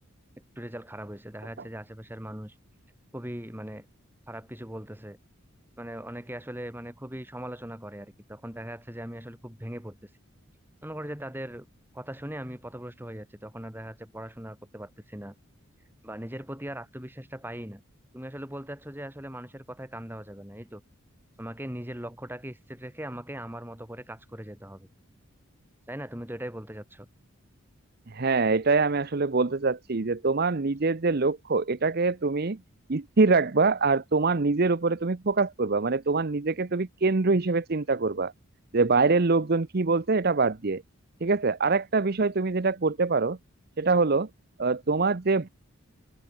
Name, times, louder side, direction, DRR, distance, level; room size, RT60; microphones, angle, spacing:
voice 1, 0.6-2.5 3.1-3.9 4.3-5.2 5.8-10.1 10.8-11.7 11.9-15.4 16.0-17.8 18.1-20.8 21.4-24.9 25.9-27.1, right 1 dB, 10° right, 4.0 m, -39 dB
voice 2, 28.1-32.6 32.9-38.3 38.7-40.8 41.2-43.4 43.8-44.3 44.6-45.5, right 3 dB, 45° right, 0.8 m, -24 dB
head